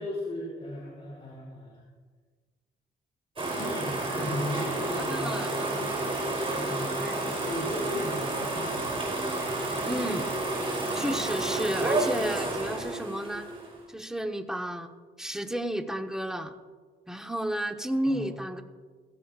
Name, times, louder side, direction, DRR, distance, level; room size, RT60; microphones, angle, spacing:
voice 1, 0.0-1.8 3.5-5.3 5.7-5.9 6.5-7.1 7.4-8.9 18.1-18.2, left 1 dB, 30° left, -4 dB, 4.5 m, -36 dB
sound 1, 3.4-13.8, right 2 dB, 30° right, 4.3 m, -30 dB
voice 2, 5.0-5.6 6.5-7.2 9.9-10.3 10.9-13.5 13.9-14.9 15.2-16.5 17.1-18.6, equal, 5° right, 5 dB, 1.1 m, -32 dB
17.5 x 15.5 x 2.5 m, 1.5 s
cardioid pair, 90°, 20 cm